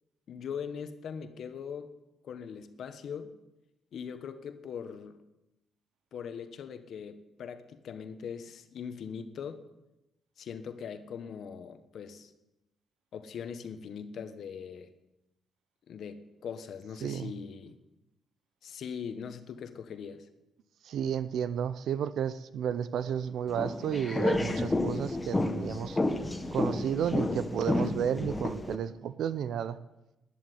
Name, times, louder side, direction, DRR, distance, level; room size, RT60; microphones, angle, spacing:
voice 1, 0.3-2.0 2.2-3.4 3.9-5.2 6.1-9.6 10.4-12.3 13.1-14.9 15.9-17.8 18.6-20.3, left 7 dB, 65° left, 10 dB, 1.4 m, -41 dB
voice 2, 17.0-17.3 20.8-26.0 26.5-29.8, right 8 dB, 70° right, 14 dB, 0.6 m, -32 dB
sound 1, 23.5-28.8, left 2 dB, 15° left, 1.6 m, -30 dB
11.5 x 11.0 x 9.3 m, 0.96 s
cardioid pair, 90°, 0 cm